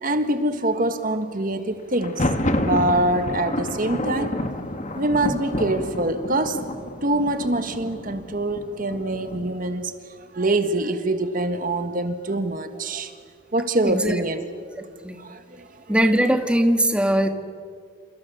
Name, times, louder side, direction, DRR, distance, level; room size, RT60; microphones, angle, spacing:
voice 1, 0.0-2.3 2.6-4.3 5.0-6.6 7.0-9.9 10.3-13.1 13.5-14.4 15.2-16.0, right 1 dB, 40° right, 9 dB, 1.5 m, -24 dB
Thunder, 1.9-9.7, left 1 dB, 35° left, 1.6 m, -29 dB
voice 2, 13.8-14.2 15.0-15.2 15.9-17.3, equal, 5° right, 6 dB, 1.6 m, -20 dB
29.0 x 27.5 x 7.0 m, 2.1 s
head